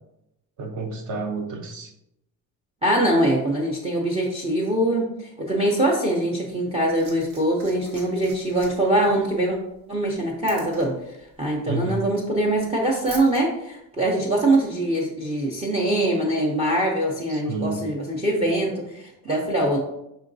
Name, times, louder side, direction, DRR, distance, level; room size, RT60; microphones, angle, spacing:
voice 1, 0.6-1.9 11.7-12.0 17.3-17.9, right 3 dB, 50° right, 6 dB, 0.7 m, -30 dB
voice 2, 2.8-9.6 9.9-10.9 11.4-19.8, right 1 dB, 15° right, -1 dB, 0.4 m, -23 dB
Liquid, 6.5-13.4 14.5-14.6, right 3 dB, 80° right, 1.3 m, -46 dB
5.2 x 3.8 x 2.6 m, 0.83 s
cardioid pair, 170°, 38 cm